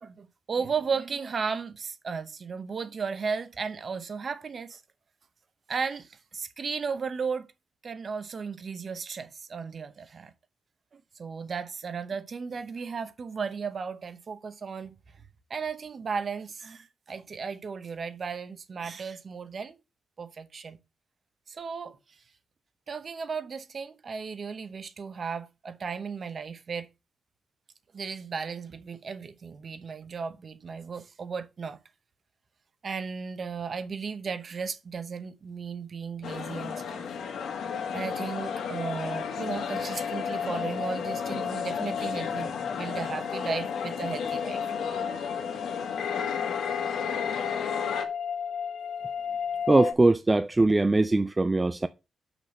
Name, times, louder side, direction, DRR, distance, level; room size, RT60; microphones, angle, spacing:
voice 1, 0.0-4.8 5.7-7.5 7.8-10.3 10.9-15.0 15.5-19.8 20.2-20.8 21.5-22.0 22.9-26.9 27.9-31.8 32.8-37.0 37.9-44.6, right 5 dB, 40° right, 0.9 m, -35 dB
sound 1, 36.2-48.0, left 7 dB, 90° left, 1.5 m, -33 dB
sound 2, 36.8-49.9, left 7 dB, 70° left, 0.6 m, -35 dB
voice 2, 49.7-51.9, right 2 dB, 15° right, 0.3 m, -21 dB
6.1 x 6.0 x 5.3 m
wide cardioid pair, 155°, 0 cm